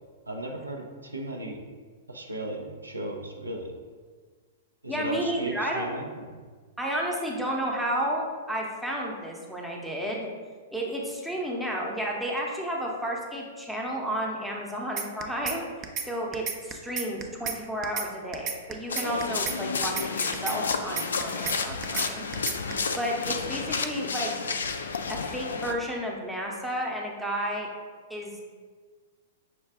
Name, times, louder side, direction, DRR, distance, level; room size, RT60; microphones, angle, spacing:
voice 1, 0.3-1.6 2.1-3.7 4.8-6.3 19.4-19.5, right 1 dB, 90° right, 1 dB, 0.5 m, -36 dB
voice 2, 4.9-5.9 6.8-10.3 10.7-15.7 16.0-22.2 23.0-24.3 25.1-27.7 28.1-28.4, equal, ahead, -2 dB, 0.7 m, -32 dB
sound 1, 15.0-15.6 15.8-16.1 16.3-17.6 17.8-18.1 18.3-19.6 19.8-20.1 20.3-21.6 21.8-22.1 22.3-22.7, right 7 dB, 30° right, 0.4 m, -32 dB
sound 2, 18.9-25.7, left 5 dB, 70° left, 0.3 m, -31 dB
5.8 x 2.3 x 3.5 m, 1.5 s
figure-of-eight pair, 105°, 0 cm